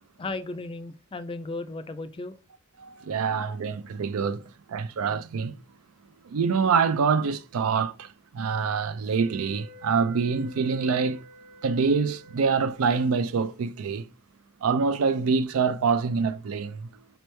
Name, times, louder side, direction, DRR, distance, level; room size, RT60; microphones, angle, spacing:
voice 1, 0.2-2.4, left 2 dB, 25° left, 0.3 m, -35 dB
voice 2, 2.8-4.4 4.7-5.5 6.3-8.1 8.3-11.2 11.6-14.0 14.6-16.9, right 5 dB, 90° right, 0.4 m, -25 dB
sound 1, 9.1-13.1, left 1 dB, 20° right, 0.6 m, -50 dB
5.2 x 3.0 x 3.2 m
head